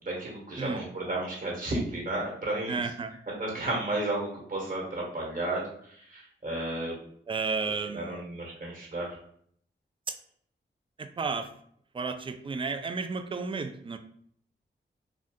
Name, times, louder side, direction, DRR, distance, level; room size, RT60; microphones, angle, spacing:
voice 1, 0.0-2.8 3.4-5.6 5.9-7.0 7.9-9.2, right 2 dB, 45° right, -2 dB, 1.3 m, -33 dB
voice 2, 2.7-3.2 7.3-8.2 10.1-10.2 11.0-11.5 11.9-14.0, right 4 dB, 25° right, 9 dB, 0.4 m, -32 dB
2.6 x 2.3 x 3.6 m, 0.64 s
cardioid pair, 50°, 20 cm